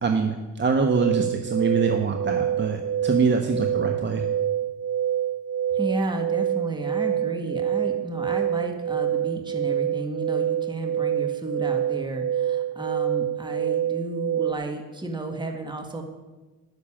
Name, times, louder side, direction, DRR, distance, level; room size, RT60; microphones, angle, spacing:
voice 1, 0.0-4.2, right 4 dB, 35° right, 4 dB, 1.3 m, -24 dB
sound 1, 0.8-14.5, right 10 dB, 65° right, 1.4 m, -26 dB
voice 2, 5.7-16.0, right 2 dB, 15° right, 4 dB, 1.7 m, -32 dB
12.0 x 6.9 x 8.8 m, 1.3 s
supercardioid pair, 85°, 33 cm